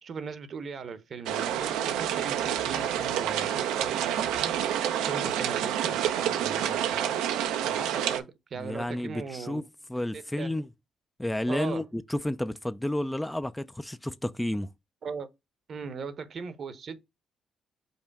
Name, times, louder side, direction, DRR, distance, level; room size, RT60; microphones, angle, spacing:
voice 1, 0.0-9.6 10.1-10.5 11.5-11.9 15.0-15.3 15.7-17.0, right 5 dB, 55° right, 0.8 m, -39 dB
sound 1, 1.3-8.2, right 10 dB, 90° right, 0.5 m, -28 dB
voice 2, 8.6-9.6 9.9-10.7 11.2-14.7, left 1 dB, 10° left, 0.4 m, -31 dB
5.4 x 2.1 x 4.6 m
supercardioid pair, 65°, 0 cm